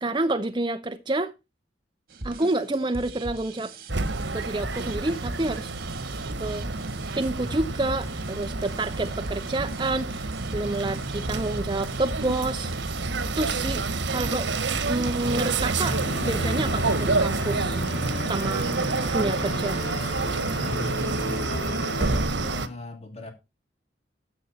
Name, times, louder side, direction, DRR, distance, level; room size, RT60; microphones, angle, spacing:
voice 1, 0.0-1.3 2.2-3.7 4.3-5.7 6.4-6.7 7.2-12.8 13.4-14.5 14.8-16.0 16.3-17.8 18.2-18.7 19.1-19.8, right 2 dB, 25° right, 0.7 m, -28 dB
sound 1, 2.1-16.0, right 2 dB, 55° right, 2.1 m, -39 dB
sound 2, 3.9-22.7, right 3 dB, 85° right, 1.1 m, -28 dB
Musical instrument, 15.8-22.2, left 2 dB, 55° left, 1.0 m, -36 dB
voice 2, 20.5-21.1 22.0-23.3, left 2 dB, 35° left, 2.6 m, -39 dB
13.5 x 7.9 x 4.2 m
head